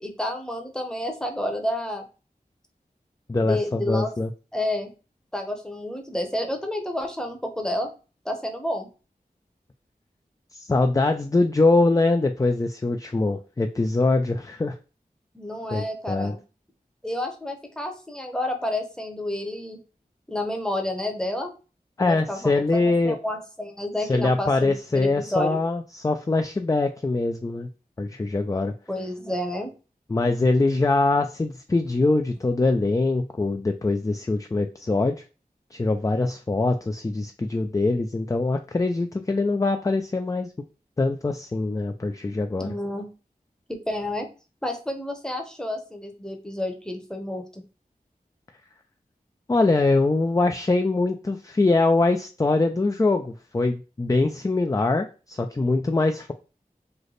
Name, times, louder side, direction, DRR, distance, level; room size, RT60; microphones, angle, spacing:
voice 1, 0.0-2.1 3.4-4.1 4.5-4.9 5.3-7.9 8.2-8.9 15.3-16.4 17.0-19.8 20.3-21.5 22.1-25.6 28.9-29.7 42.6-43.1 43.7-44.3 44.6-47.6, left 1 dB, 5° left, 4 dB, 0.8 m, -30 dB
voice 2, 3.3-4.3 10.5-14.7 15.7-16.3 22.0-23.2 24.1-27.7 28.0-28.7 30.1-35.2 35.7-40.5 41.0-42.7 49.5-56.3, left 3 dB, 20° left, 6 dB, 0.3 m, -23 dB
3.3 x 2.1 x 3.8 m, 0.34 s
wide cardioid pair, 50°, 16 cm